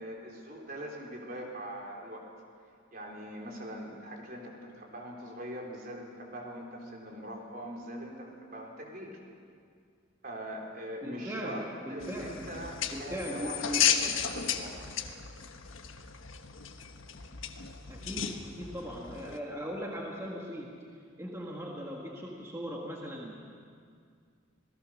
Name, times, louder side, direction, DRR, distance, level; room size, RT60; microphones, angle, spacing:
voice 1, 0.0-2.3 2.9-9.2 10.2-14.9, equal, 45° right, 0 dB, 3.7 m, -42 dB
voice 2, 11.0-12.4 12.9-14.0 17.9-20.8 21.2-23.4, equal, 15° right, -2 dB, 1.8 m, -39 dB
sound 1, 12.0-19.4, left 8 dB, 85° left, 1.3 m, -34 dB
27.0 x 18.5 x 6.4 m, 2.2 s
head